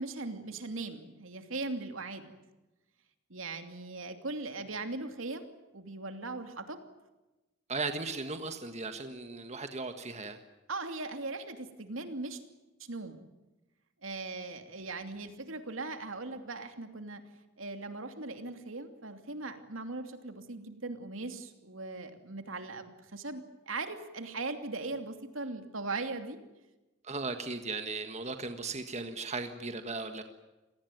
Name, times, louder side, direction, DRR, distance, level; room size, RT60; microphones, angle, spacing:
voice 1, 0.0-2.3 3.3-5.5 5.7-6.8 10.7-12.4 12.8-13.2 14.0-17.2 17.6-26.4, right 3 dB, 70° right, 7 dB, 2.8 m, -39 dB
voice 2, 7.7-10.4 27.0-30.2, right 3 dB, 35° right, 7 dB, 1.6 m, -37 dB
27.5 x 19.0 x 9.3 m, 1.1 s
head